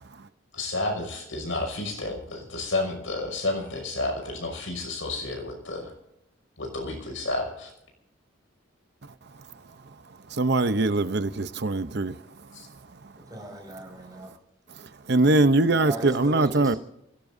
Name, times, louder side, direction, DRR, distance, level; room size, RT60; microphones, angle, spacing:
voice 1, 0.5-5.9 6.6-7.7 12.5-12.7, left 2 dB, 80° left, 5.8 m, -31 dB
voice 2, 10.3-12.2 14.8-16.8, right 2 dB, 55° right, 0.7 m, -22 dB
voice 3, 13.1-14.3 15.8-16.8, right 1 dB, 20° right, 5.4 m, -37 dB
28.0 x 17.5 x 2.7 m
head